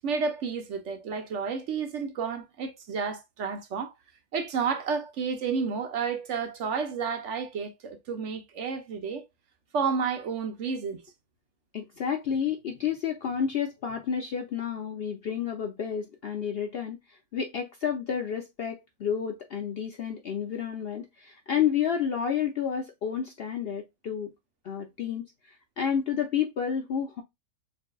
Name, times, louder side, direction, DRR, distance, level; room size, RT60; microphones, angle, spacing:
voice 1, 0.0-3.9 4.3-9.2 9.7-11.0, right 5 dB, 65° right, 0.9 m, -31 dB
voice 2, 11.7-24.3 24.6-27.2, left 8 dB, 65° left, 0.6 m, -30 dB
6.7 x 2.6 x 2.2 m
omnidirectional pair, 1.5 m